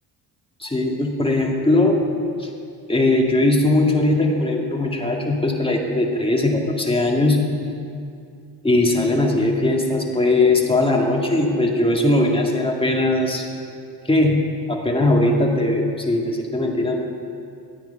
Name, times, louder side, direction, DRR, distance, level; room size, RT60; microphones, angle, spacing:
voice 1, 0.6-2.0 2.4-2.5 2.9-7.5 8.6-13.5 14.1-17.0, left 2 dB, 10° left, 0 dB, 1.9 m, -19 dB
12.5 x 8.9 x 5.6 m, 2.4 s
cardioid pair, 75°, 45 cm